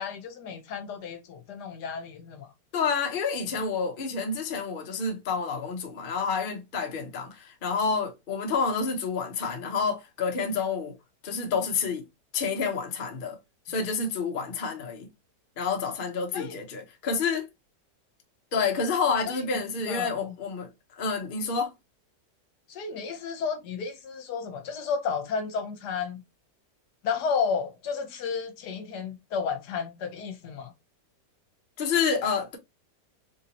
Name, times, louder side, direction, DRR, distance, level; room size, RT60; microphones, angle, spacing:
voice 1, 0.0-2.5 16.3-16.5 19.3-20.3 22.7-26.2 27.0-30.7, left 6 dB, 75° left, 1.3 m, -32 dB
voice 2, 2.7-10.9 11.2-12.0 12.3-13.4 13.7-15.1 15.6-17.5 18.5-20.7 21.0-21.7 31.8-32.6, left 5 dB, 45° left, 0.7 m, -29 dB
3.7 x 2.7 x 2.8 m
omnidirectional pair, 1.8 m